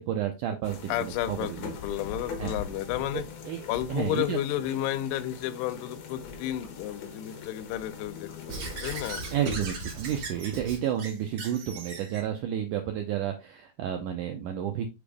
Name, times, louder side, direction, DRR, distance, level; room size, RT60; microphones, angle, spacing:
voice 1, 0.0-1.7 2.4-2.5 3.1-4.4 9.3-14.9, right 10 dB, 90° right, 1.8 m, -31 dB
sound 1, 0.6-9.5, left 5 dB, 60° left, 2.5 m, -42 dB
voice 2, 0.9-3.3 3.7-9.2, left 13 dB, 90° left, 2.7 m, -32 dB
Squeak / Writing, 8.5-12.2, right 3 dB, 50° right, 2.6 m, -37 dB
6.8 x 5.0 x 3.4 m
omnidirectional pair, 4.5 m